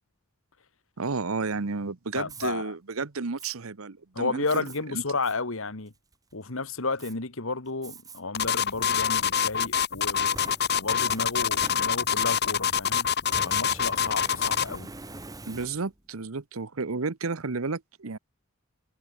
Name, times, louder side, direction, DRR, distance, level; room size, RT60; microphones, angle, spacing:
voice 1, 1.0-5.0 15.4-18.2, right 4 dB, 80° right, 1.0 m, -32 dB
voice 2, 2.1-2.7 4.2-5.9 6.3-10.3 10.8-13.1 13.4-14.9, left 3 dB, 70° left, 1.9 m, -32 dB
Fire, 2.3-2.5 3.4-3.5 4.5-4.8 5.2-5.4 5.9-6.3 7.0-7.1 7.8-8.2 8.7-8.8 9.8-12.3 13.2-16.1, right 2 dB, 15° right, 1.5 m, -45 dB
sound 1, 8.3-14.8, left 7 dB, 50° left, 1.4 m, -25 dB
head